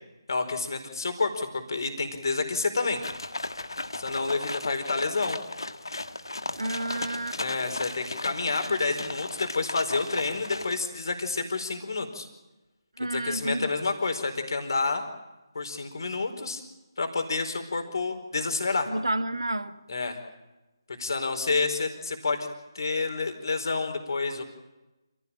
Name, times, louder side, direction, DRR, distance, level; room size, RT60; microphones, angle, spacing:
voice 1, 0.3-3.0 4.0-5.4 7.4-12.3 13.0-15.0 15.5-16.6 17.0-18.9 19.9-20.2 21.0-22.4 22.7-24.4, left 3 dB, 60° left, 6 dB, 4.5 m, -29 dB
sound 1, 3.0-10.8, left 2 dB, 75° left, 1.6 m, -36 dB
voice 2, 6.6-7.4 13.0-13.7 18.9-19.7, right 1 dB, 80° right, 11 dB, 1.5 m, -30 dB
28.0 x 16.5 x 8.9 m, 1.0 s
figure-of-eight pair, 150°, 2 cm